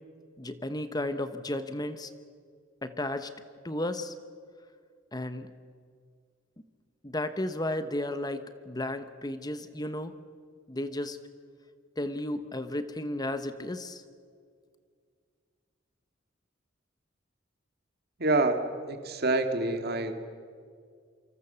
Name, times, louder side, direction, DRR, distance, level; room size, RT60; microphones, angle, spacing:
voice 1, 0.4-2.1 2.8-3.3 3.6-4.1 5.1-5.5 7.0-10.1 10.7-11.2 12.0-14.0, left 1 dB, 20° left, 10 dB, 1.1 m, -33 dB
voice 2, 18.2-18.6 18.9-20.2, right 2 dB, 55° right, 7 dB, 2.3 m, -27 dB
28.0 x 25.5 x 7.0 m, 2.1 s
head